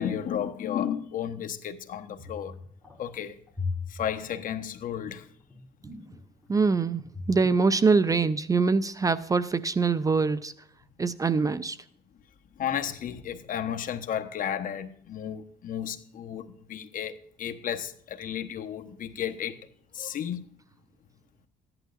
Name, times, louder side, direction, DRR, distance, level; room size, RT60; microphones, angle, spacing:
voice 1, 0.0-2.5 3.0-3.3 3.9-5.3 12.6-19.6 19.9-20.5, left 9 dB, 55° left, 1.0 m, -33 dB
sound 1, 2.1-3.0 3.5-6.6 7.0-7.5 7.8-7.9, left 4 dB, 5° left, 3.3 m, -38 dB
voice 2, 6.5-7.0 7.3-10.5 11.0-11.8, right 4 dB, 20° right, 0.4 m, -24 dB
15.0 x 11.0 x 2.5 m
cardioid pair, 110°, 17 cm